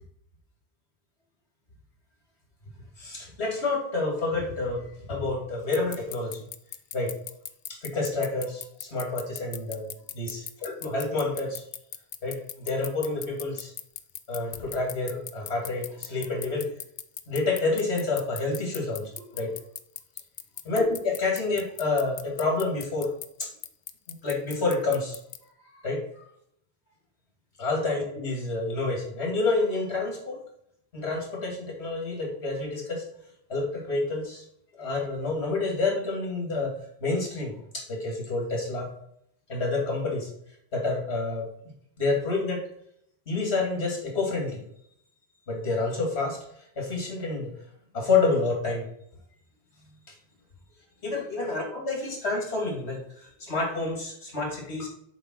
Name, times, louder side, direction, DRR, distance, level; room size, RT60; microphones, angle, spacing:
voice 1, 3.0-6.4 6.9-7.1 7.7-9.9 10.1-11.6 12.2-13.7 14.3-16.7 17.3-19.6 20.7-23.1 23.4-23.5 24.1-25.2 25.7-26.2 27.6-30.4 30.9-33.0 33.5-34.4 34.8-36.7 37.0-38.9 39.5-40.3 40.7-41.5 42.0-42.6 43.3-44.6 45.5-46.4 46.8-47.5 47.9-48.9 51.0-54.9, left 3 dB, 85° left, 0 dB, 2.4 m, -28 dB
sound 1, 5.7-25.4, left 9 dB, 55° left, 0.6 m, -37 dB
7.3 x 3.4 x 5.9 m, 0.72 s
omnidirectional pair, 1.1 m